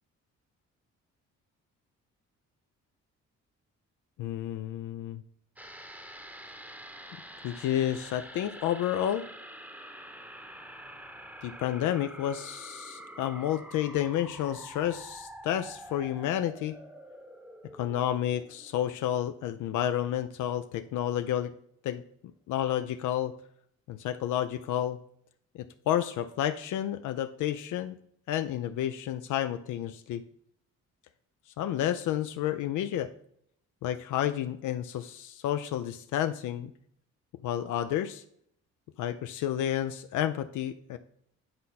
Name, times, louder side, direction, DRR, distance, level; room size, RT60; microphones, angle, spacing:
voice 1, 4.2-5.2 7.4-9.2 11.4-16.8 17.8-21.5 21.8-22.0 22.5-23.3 23.9-25.0 25.9-28.0 28.3-30.2 31.6-33.1 33.8-36.7 37.4-38.2 39.0-41.0, left 11 dB, 80° left, 9 dB, 0.5 m, -30 dB
sound 1, 5.6-20.2 20.5-20.6, equal, 5° right, 0.9 m, -47 dB
9.5 x 4.2 x 4.1 m, 0.68 s
cardioid pair, 90°, 30 cm